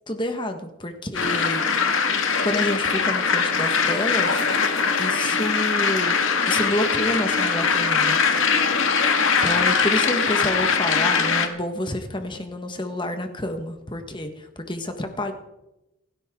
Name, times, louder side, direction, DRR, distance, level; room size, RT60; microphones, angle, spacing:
voice 1, 0.1-1.7 2.4-4.4 5.0-6.2 6.5-8.2 9.4-15.3, left 1 dB, 20° left, 6 dB, 1.5 m, -28 dB
sound 1, 1.1-11.5, left 5 dB, 65° left, 1.9 m, -21 dB
29.0 x 11.0 x 3.8 m, 0.92 s
head